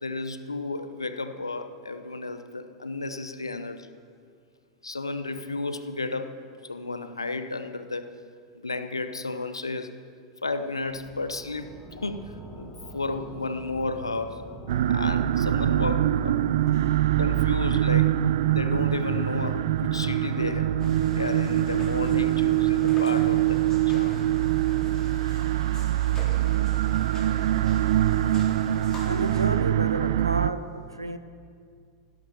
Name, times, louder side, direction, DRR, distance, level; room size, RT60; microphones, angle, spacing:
voice 1, 0.0-3.9 4.8-6.4 6.6-8.1 8.5-9.9 10.4-14.4 14.9-16.4 17.2-18.1 18.5-20.7 21.1-23.6 23.9-24.2, left 3 dB, 80° left, 10 dB, 0.9 m, -32 dB
sound 1, 10.8-25.1, right 2 dB, 5° left, 2.6 m, -42 dB
sound 2, 14.7-30.5, right 13 dB, 55° right, 0.4 m, -24 dB
sound 3, 20.8-29.5, left 1 dB, 20° left, 4.2 m, -46 dB
voice 2, 29.0-31.2, right 2 dB, 85° right, 10 dB, 0.9 m, -30 dB
16.0 x 12.5 x 5.8 m, 2.2 s
figure-of-eight pair, 90°, 2 cm